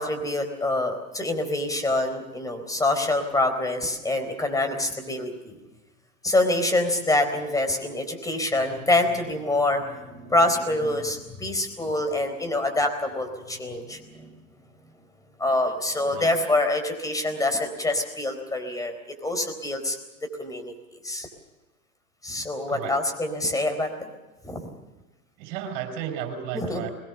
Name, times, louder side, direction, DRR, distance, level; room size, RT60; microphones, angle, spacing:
voice 1, 0.0-5.6 6.2-14.3 15.4-20.0 20.4-21.3 22.2-24.1 24.4-24.7 26.5-26.8, left 2 dB, 10° left, 7 dB, 4.1 m, -26 dB
voice 2, 25.4-26.9, right 9 dB, 45° right, 5 dB, 6.5 m, -33 dB
22.5 x 21.0 x 6.9 m, 1.1 s
hypercardioid pair, 120°, 43 cm